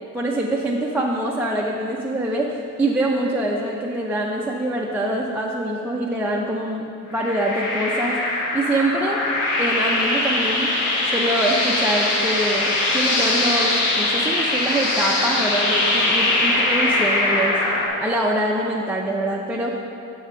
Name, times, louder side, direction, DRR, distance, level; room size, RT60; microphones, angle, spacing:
voice 1, 0.1-8.2 8.5-9.2 9.6-10.7 11.1-17.6 18.0-19.7, right 1 dB, 5° right, -3 dB, 0.4 m, -24 dB
sound 1, 7.1-17.9, left 2 dB, 70° left, 1.2 m, -21 dB
6.9 x 4.1 x 6.3 m, 2.6 s
cardioid pair, 135°, 33 cm